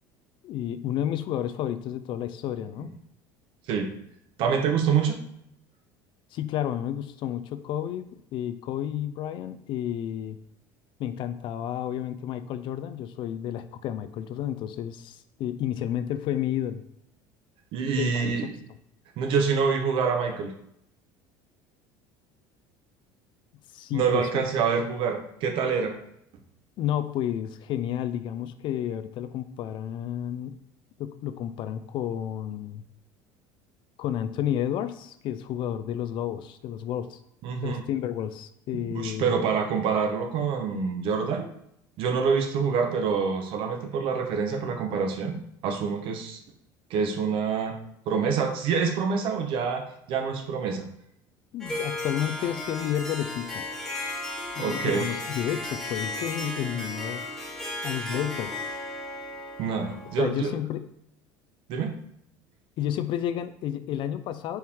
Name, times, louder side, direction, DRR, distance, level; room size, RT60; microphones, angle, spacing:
voice 1, 0.4-2.9 6.3-10.4 11.0-16.8 18.0-18.3 23.7-24.5 26.8-30.6 31.0-32.8 34.0-37.2 37.6-39.5 51.5-53.7 54.5-57.2 57.8-58.7 60.2-60.9 62.8-64.6, left 10 dB, 55° left, 12 dB, 0.3 m, -31 dB
voice 2, 4.4-5.2 17.7-18.5 19.2-20.5 23.9-26.0 37.4-37.8 38.7-41.5 42.0-45.4 45.6-46.4 46.9-47.8 48.1-50.9 54.6-55.1 59.6-60.5 61.7-62.0, right 6 dB, 60° right, 5 dB, 0.8 m, -26 dB
Harp, 51.6-60.4, left 2 dB, 5° left, 1.3 m, -35 dB
4.5 x 2.8 x 3.5 m, 0.73 s
supercardioid pair, 105°, 10 cm